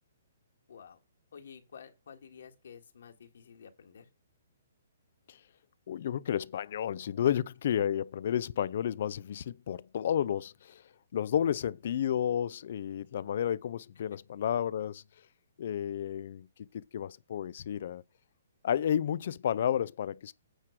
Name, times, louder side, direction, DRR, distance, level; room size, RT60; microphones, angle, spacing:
voice 1, 0.7-1.0 1.3-4.1 7.2-7.3, left 7 dB, 75° left, 1.8 m, -51 dB
voice 2, 5.9-10.8 11.1-15.0 15.6-18.0 18.6-20.3, left 9 dB, 60° left, 0.4 m, -31 dB
9.0 x 4.6 x 6.0 m
hypercardioid pair, 145°, 0 cm